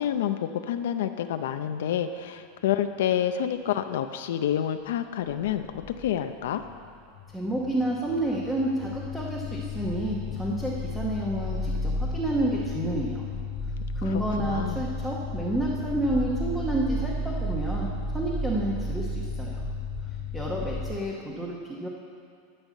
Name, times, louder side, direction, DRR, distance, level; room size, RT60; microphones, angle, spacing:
voice 1, 0.0-6.6 14.0-14.8, left 10 dB, 75° left, 8 dB, 0.5 m, -28 dB
sound 1, 5.3-6.9 7.1-21.0, left 2 dB, 20° left, 0.9 m, -33 dB
voice 2, 7.3-13.2 13.9-19.6 20.3-21.9, right 1 dB, 5° right, -4 dB, 1.0 m, -30 dB
12.0 x 5.6 x 8.4 m, 2.4 s
supercardioid pair, 170°, 0 cm